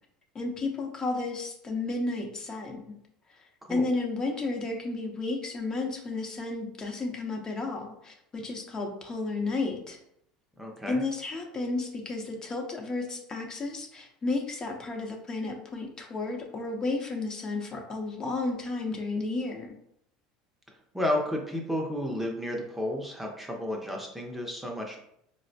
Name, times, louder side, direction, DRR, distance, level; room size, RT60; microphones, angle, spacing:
voice 1, 0.3-2.8 3.4-10.0 10.9-19.7, left 3 dB, 30° left, 2 dB, 0.7 m, -32 dB
voice 2, 10.6-11.0 20.9-25.0, left 1 dB, 5° right, 0 dB, 0.6 m, -32 dB
4.1 x 2.0 x 2.7 m, 0.74 s
hypercardioid pair, 90°, 2 cm